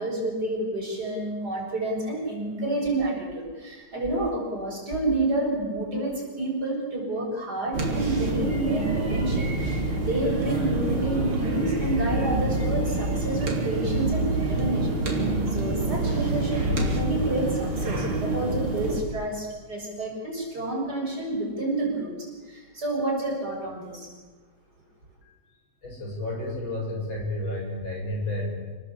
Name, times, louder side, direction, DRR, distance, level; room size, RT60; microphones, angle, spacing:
voice 1, 0.0-24.1, right 2 dB, 50° right, -1 dB, 7.6 m, -29 dB
sound 1, 7.7-19.0, right 2 dB, 85° right, 4.4 m, -26 dB
voice 2, 25.8-28.5, left 1 dB, 70° left, 0 dB, 7.6 m, -31 dB
29.0 x 19.0 x 8.6 m, 1.4 s
omnidirectional pair, 2.2 m